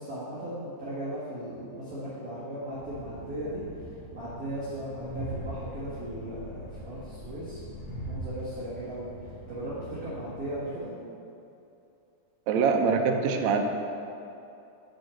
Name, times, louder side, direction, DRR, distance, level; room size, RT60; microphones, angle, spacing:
voice 1, 0.0-3.9 4.1-7.6 8.0-9.1 9.5-10.9, right 1 dB, 35° right, -12 dB, 1.9 m, -37 dB
Train, 2.7-10.5, right 1 dB, 40° left, 0.9 m, -42 dB
voice 2, 12.5-13.6, right 5 dB, 75° right, 3 dB, 1.8 m, -24 dB
6.4 x 6.2 x 7.0 m, 2.8 s
omnidirectional pair, 3.6 m